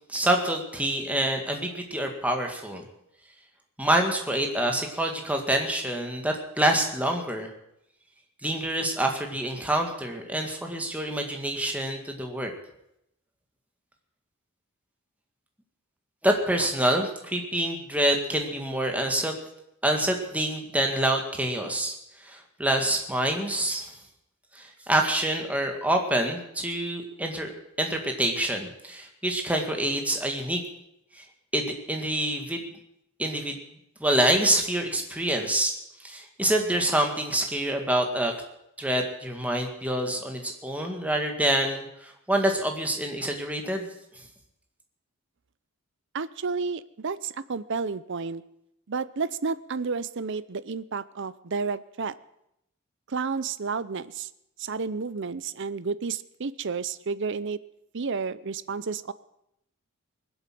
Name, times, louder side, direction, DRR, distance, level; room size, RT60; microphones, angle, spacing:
voice 1, 0.1-2.8 3.8-7.5 8.4-12.5 16.2-19.3 19.8-22.0 22.2-23.9 24.5-27.5 27.8-30.6 31.2-31.3 31.5-32.6 33.2-33.6 34.0-35.7 36.0-38.3 38.8-43.9, right 1 dB, 5° right, 3 dB, 2.0 m, -26 dB
voice 2, 46.1-48.4 48.9-52.2 53.1-54.3 54.6-57.6 57.9-59.1, right 5 dB, 60° right, 16 dB, 0.6 m, -31 dB
21.0 x 8.1 x 7.7 m, 0.80 s
head